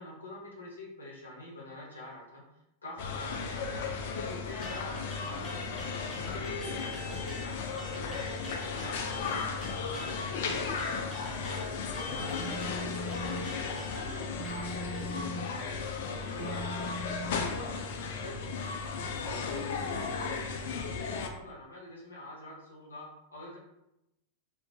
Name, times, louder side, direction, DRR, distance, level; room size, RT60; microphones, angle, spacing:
voice 1, 0.0-2.4 2.8-5.8 6.2-8.4 8.8-11.1 11.4-18.8 19.2-23.6, left 1 dB, 75° left, -3 dB, 0.7 m, -46 dB
sound 1, 3.0-21.3, left 5 dB, 55° left, 0.3 m, -35 dB
sound 2, 4.6-7.5 7.8-15.1, left 3 dB, 10° left, 0.7 m, -44 dB
Telephone, 12.4-13.5 14.4-15.5 16.4-17.5, equal, 40° right, 1.2 m, -40 dB
2.4 x 2.1 x 2.4 m, 0.85 s
figure-of-eight pair, 90°, 0 cm